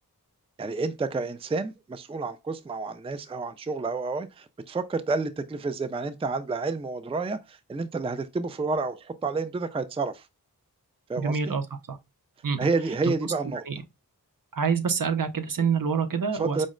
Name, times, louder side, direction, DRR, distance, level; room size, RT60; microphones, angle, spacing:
voice 1, 0.6-10.3 11.1-11.6 12.6-13.6 16.4-16.7, right 3 dB, 15° right, 0.4 m, -30 dB
voice 2, 11.2-11.6 11.9-12.0 12.4-12.7 13.7-13.8 14.5-16.7, right 6 dB, 60° right, 0.7 m, -26 dB
5.1 x 2.1 x 3.7 m
wide cardioid pair, 50°, 37 cm